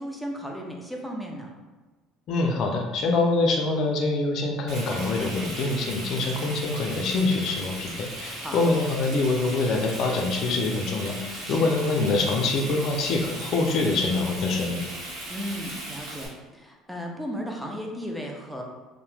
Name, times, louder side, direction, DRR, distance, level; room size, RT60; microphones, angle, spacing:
voice 1, 0.0-1.5 8.4-8.6 11.4-11.7 15.3-18.6, equal, ahead, 0 dB, 0.5 m, -35 dB
voice 2, 2.3-14.8, left 3 dB, 55° left, 2 dB, 0.4 m, -25 dB
Frying (food), 4.7-16.3, right 1 dB, 65° right, 0.9 m, -37 dB
2.8 x 2.1 x 3.2 m, 1.2 s
cardioid pair, 115°, 0 cm